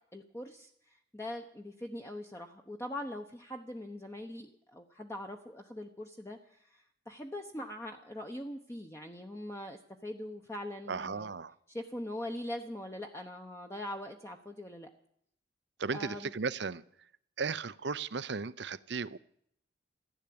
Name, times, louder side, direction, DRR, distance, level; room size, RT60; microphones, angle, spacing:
voice 1, 0.1-11.3 11.7-14.9 15.9-16.3, left 1 dB, 15° left, 3 dB, 0.9 m, -42 dB
voice 2, 10.9-11.5 15.8-16.8 17.4-19.2, right 5 dB, 60° right, 17 dB, 0.6 m, -35 dB
15.0 x 11.0 x 8.6 m, 0.68 s
head